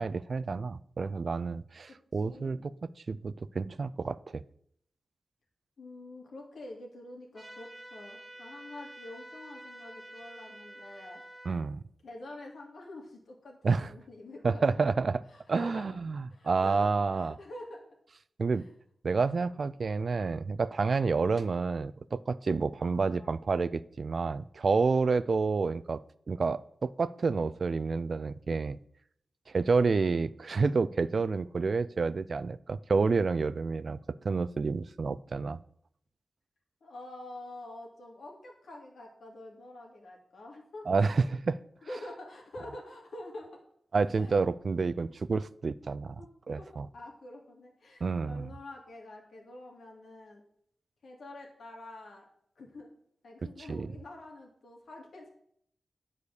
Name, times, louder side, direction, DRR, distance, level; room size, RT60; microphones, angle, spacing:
voice 1, 0.0-2.7 3.1-4.4 11.5-11.8 13.6-13.9 14.4-15.2 15.5-17.4 18.4-18.6 19.0-26.0 26.3-28.8 29.5-34.0 34.2-35.6 40.9-41.6 43.9-46.2 46.5-46.9 48.0-48.5 53.7-53.9, right 4 dB, 50° right, 16 dB, 0.3 m, -29 dB
voice 2, 1.9-2.5 5.8-11.2 11.5-11.6 12.0-14.8 15.3-16.0 16.3-17.8 18.4-18.7 22.8-23.3 29.8-30.2 36.8-40.9 41.8-43.5 44.2-44.4 45.1-45.2 46.2-46.3 46.6-46.7 46.9-50.4 51.0-52.3 52.6-52.9 53.2-55.3, left 2 dB, 75° left, 0 dB, 2.5 m, -47 dB
sound 1, 7.3-11.5, right 1 dB, 5° right, 2.0 m, -48 dB
11.0 x 4.9 x 6.6 m, 0.68 s
wide cardioid pair, 175°, 0 cm